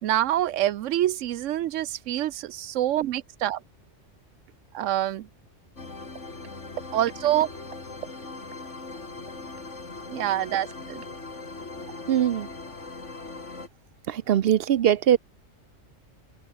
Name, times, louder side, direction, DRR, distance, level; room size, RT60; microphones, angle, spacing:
voice 1, 0.0-3.6 4.7-5.3 6.9-7.5 10.1-11.0, right 12 dB, 80° right, 1.0 m, -26 dB
sound 1, 5.8-13.7, left 3 dB, 70° left, 3.5 m, -40 dB
voice 2, 12.1-12.5 14.1-15.2, right 10 dB, 60° right, 0.7 m, -21 dB
omnidirectional pair, 1.3 m